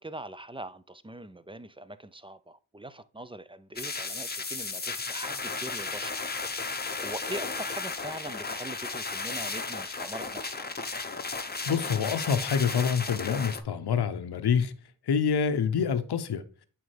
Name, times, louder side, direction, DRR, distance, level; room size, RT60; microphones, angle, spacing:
voice 1, 0.0-6.2 6.5-10.9, right 1 dB, 15° right, 0.4 m, -42 dB
sound 1, 3.8-13.6, left 4 dB, 20° left, 0.8 m, -34 dB
voice 2, 11.7-14.7 15.1-16.4, left 6 dB, 60° left, 0.8 m, -26 dB
8.6 x 3.5 x 3.3 m
cardioid pair, 45°, 45 cm